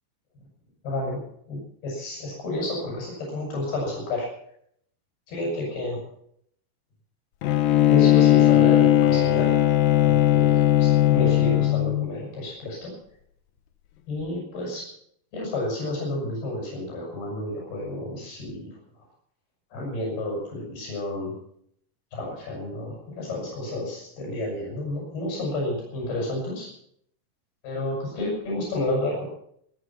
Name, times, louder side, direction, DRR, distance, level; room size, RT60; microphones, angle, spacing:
voice 1, 0.8-1.2 1.5-4.3 5.3-6.0 7.9-9.6 10.0-12.9 14.1-14.9 15.3-18.8 19.7-21.4 22.1-26.7 27.6-29.2, left 1 dB, 90° left, -1 dB, 8.0 m, -30 dB
Bowed string instrument, 7.4-12.1, left 13 dB, 70° left, 2.7 m, -18 dB
26.5 x 9.3 x 5.8 m, 0.69 s
omnidirectional pair, 4.4 m